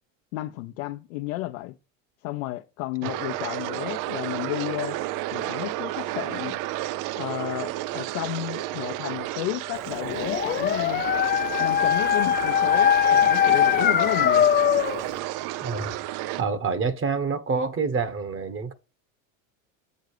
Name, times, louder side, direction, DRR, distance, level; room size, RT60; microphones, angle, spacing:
voice 1, 0.3-1.8 2.2-5.0 5.3-6.6 7.2-11.0 11.6-14.5, left 17 dB, 75° left, 0.8 m, -32 dB
sound 1, 3.0-16.4, right 16 dB, 50° right, 0.5 m, -32 dB
Dog, 10.0-15.0, left 9 dB, 25° left, 0.5 m, -21 dB
voice 2, 15.6-16.0 16.4-18.7, right 5 dB, 30° right, 1.4 m, -27 dB
8.1 x 5.2 x 5.0 m
hypercardioid pair, 90°, 41 cm